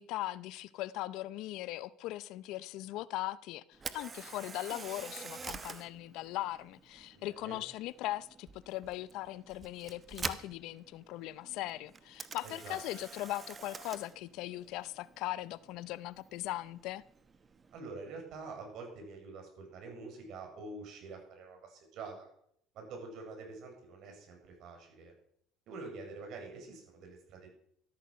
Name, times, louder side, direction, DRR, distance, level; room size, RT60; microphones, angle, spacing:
voice 1, 0.0-17.0, left 16 dB, 70° left, 0.6 m, -39 dB
Camera, 3.7-17.8, right 5 dB, 30° right, 1.1 m, -47 dB
voice 2, 7.1-7.6 12.4-12.8 17.7-22.3 22.7-25.1 25.7-27.5, right 3 dB, 60° right, 6.7 m, -46 dB
13.5 x 13.0 x 5.7 m
supercardioid pair, 100°, 0 cm